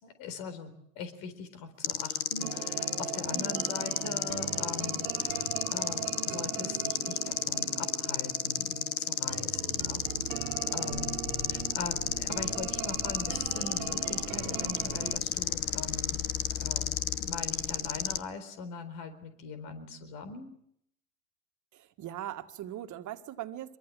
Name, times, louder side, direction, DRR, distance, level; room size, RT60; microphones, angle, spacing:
voice 1, 0.0-10.0 10.3-11.2 11.5-20.6, left 4 dB, 60° left, 11 dB, 4.1 m, -42 dB
sound 1, 1.8-18.2, left 10 dB, 80° left, 1.4 m, -33 dB
sound 2, 2.4-15.2, right 11 dB, 75° right, 1.8 m, -40 dB
voice 2, 3.3-3.6 10.6-11.0 21.7-23.8, right 12 dB, 45° right, 7 dB, 1.9 m, -41 dB
sound 3, 10.9-18.2, left 9 dB, 25° left, 1.4 m, -43 dB
25.0 x 23.5 x 7.7 m, 0.72 s
hypercardioid pair, 75°, 42 cm